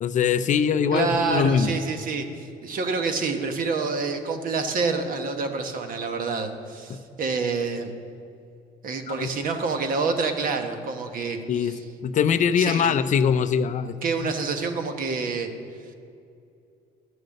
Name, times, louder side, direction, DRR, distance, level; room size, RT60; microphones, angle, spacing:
voice 1, 0.0-1.7 9.1-9.3 11.5-11.7 12.0-14.0, left 7 dB, 50° left, 12 dB, 0.5 m, -22 dB
voice 2, 0.9-7.9 8.8-11.8 12.6-13.0 14.0-15.5, right 4 dB, 55° right, 6 dB, 1.3 m, -27 dB
13.0 x 6.5 x 6.6 m, 2.5 s
cardioid pair, 110°, 17 cm